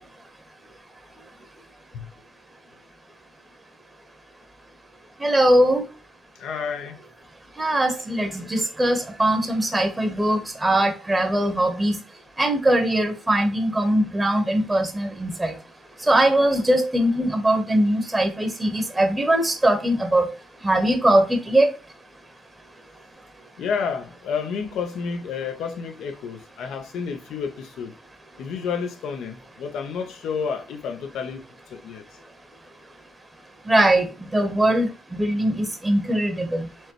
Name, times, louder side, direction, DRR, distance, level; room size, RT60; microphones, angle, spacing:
voice 1, 5.2-5.8 7.6-11.9 12.4-15.5 16.1-20.3 20.6-21.7 33.7-34.0 34.3-36.4, right 1 dB, 15° right, 0.8 m, -21 dB
voice 2, 6.4-7.0 23.6-28.0 28.4-31.4 31.7-32.1, left 6 dB, 80° left, 0.8 m, -30 dB
4.6 x 3.2 x 2.9 m
cardioid pair, 105°, 0 cm